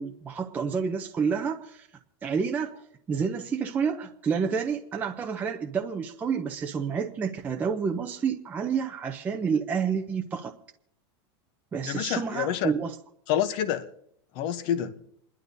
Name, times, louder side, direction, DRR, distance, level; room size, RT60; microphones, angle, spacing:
voice 1, 0.0-1.9 2.2-2.8 3.1-10.5 11.7-12.9, right 6 dB, 10° right, 0.6 m, -29 dB
voice 2, 11.8-12.7 13.3-13.9 14.3-15.0, left 10 dB, 35° left, 0.8 m, -28 dB
28.5 x 11.5 x 2.7 m
supercardioid pair, 170°, 14 cm